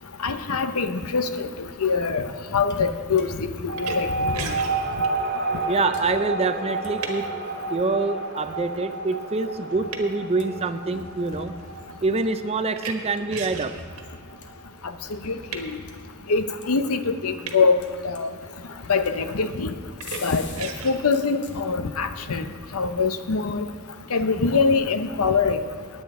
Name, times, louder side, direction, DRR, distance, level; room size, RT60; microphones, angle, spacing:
voice 1, 0.2-2.3 2.5-4.6 15.1-15.8 16.3-17.8 18.0-18.3 18.9-19.7 20.2-22.5 22.7-23.7 24.1-25.6, left 4 dB, 80° left, 9 dB, 0.8 m, -24 dB
sound 1, 2.7-2.9 3.2-7.5 8.5-12.3 12.8-17.1 17.5-18.6 19.1-20.9 21.1-21.6, left 3 dB, 55° left, 1.2 m, -47 dB
sound 2, 3.7-14.6, right 2 dB, 50° right, 1.1 m, -30 dB
sound 3, 3.7-7.4 8.0-8.4 9.0-9.3 9.5-14.0 14.9-15.7 17.4-17.6 18.0-19.0 19.3-20.2 20.6-21.3, right 5 dB, 75° right, 1.5 m, -37 dB
voice 2, 5.7-7.3 7.7-11.5 12.0-13.8, right 3 dB, 30° right, 10 dB, 0.5 m, -25 dB
19.0 x 8.8 x 3.7 m, 2.1 s
head